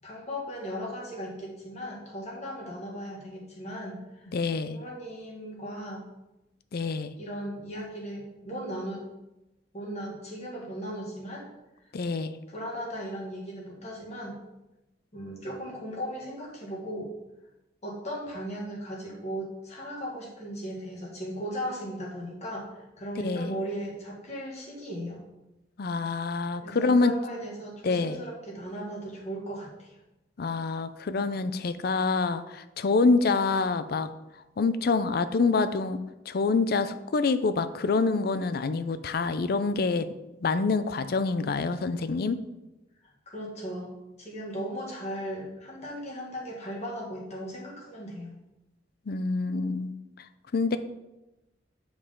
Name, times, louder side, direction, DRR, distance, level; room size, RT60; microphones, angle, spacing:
voice 1, 0.0-4.3 4.7-6.1 7.2-9.1 9.7-11.5 12.5-14.4 15.1-17.1 17.8-25.2 26.6-30.0 43.3-48.3, equal, 40° left, -3 dB, 1.8 m, -37 dB
voice 2, 4.3-4.8 6.7-7.1 11.9-12.3 23.2-23.6 25.8-27.1 27.8-28.2 30.4-34.1 34.6-36.0 36.3-40.1 40.4-42.4 49.1-49.9 50.5-50.8, left 4 dB, 55° left, 12 dB, 0.4 m, -26 dB
8.3 x 4.8 x 3.7 m, 0.99 s
head